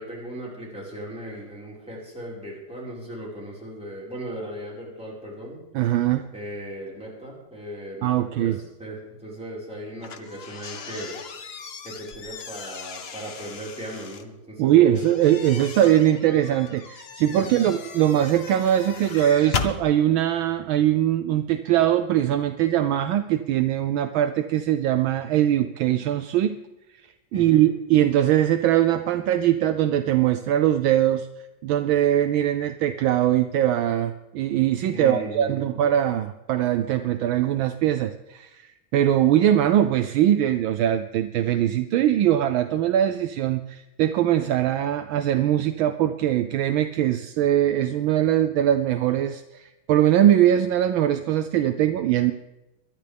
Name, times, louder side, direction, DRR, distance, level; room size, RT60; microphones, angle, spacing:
voice 1, 0.0-5.6 6.3-8.1 8.4-8.5 8.8-11.2 11.8-15.0 17.3-17.7 27.3-27.6 34.9-35.7, equal, 5° right, -6 dB, 4.8 m, -37 dB
voice 2, 5.7-6.3 8.0-8.6 14.6-26.6 27.3-31.3 31.6-52.3, right 11 dB, 75° right, 9 dB, 1.3 m, -21 dB
sound 1, 10.0-14.2 15.0-19.8, left 5 dB, 65° left, 0.6 m, -36 dB
22.5 x 12.0 x 3.5 m, 0.99 s
omnidirectional pair, 2.3 m